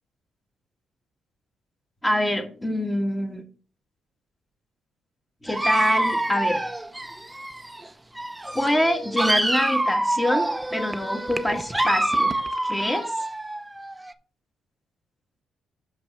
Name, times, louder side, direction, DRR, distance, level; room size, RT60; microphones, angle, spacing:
voice 1, 2.0-3.4 5.4-6.6 8.5-12.4 12.6-13.1, left 1 dB, 10° left, 4 dB, 1.9 m, -25 dB
Dog, 5.5-7.9 8.2-14.1, right 1 dB, 10° right, 0.6 m, -26 dB
6.1 x 5.3 x 5.5 m, 0.38 s
cardioid pair, 90°, 0 cm